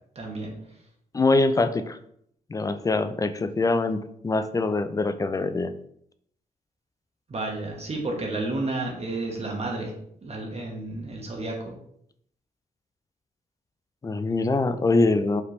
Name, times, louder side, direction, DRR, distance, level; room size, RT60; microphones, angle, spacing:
voice 1, 0.1-0.5 7.3-9.9 10.2-11.7, right 2 dB, 45° right, 0 dB, 1.1 m, -31 dB
voice 2, 1.1-2.0 2.5-5.7 14.0-15.4, left 3 dB, 25° left, 10 dB, 0.4 m, -24 dB
4.8 x 3.3 x 3.2 m, 0.69 s
cardioid pair, 80°, 15 cm